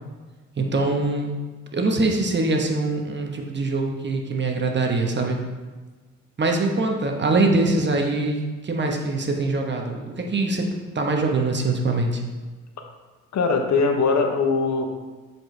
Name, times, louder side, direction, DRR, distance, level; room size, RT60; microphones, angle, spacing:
voice 1, 0.6-1.3 1.7-5.4 6.4-10.7 10.9-12.2, right 2 dB, 30° right, 2 dB, 1.2 m, -23 dB
voice 2, 13.3-14.9, left 4 dB, 55° left, 4 dB, 1.0 m, -21 dB
7.6 x 4.7 x 3.3 m, 1.3 s
supercardioid pair, 65°, 34 cm